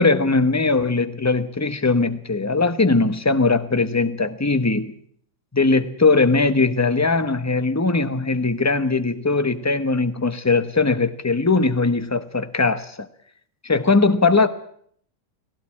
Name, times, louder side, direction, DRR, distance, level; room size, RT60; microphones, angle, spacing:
voice 1, 0.0-4.9 5.5-13.1 13.6-14.5, left 3 dB, 10° left, 12 dB, 0.8 m, -20 dB
19.0 x 17.5 x 8.7 m, 0.62 s
omnidirectional pair, 2.0 m